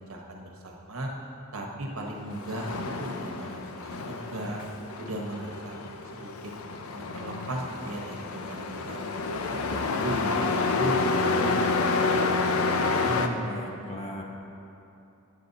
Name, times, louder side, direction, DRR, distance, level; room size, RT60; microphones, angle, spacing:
voice 1, 0.1-1.1 1.5-4.6 5.0-5.8 6.1-6.3 6.9-9.1 9.5-12.6, right 1 dB, 80° right, 0 dB, 1.3 m, -37 dB
Truck, 2.2-13.3, left 3 dB, 90° left, 0.6 m, -29 dB
voice 2, 12.9-14.2, equal, 30° left, -1 dB, 1.1 m, -35 dB
9.8 x 8.5 x 4.0 m, 2.9 s
head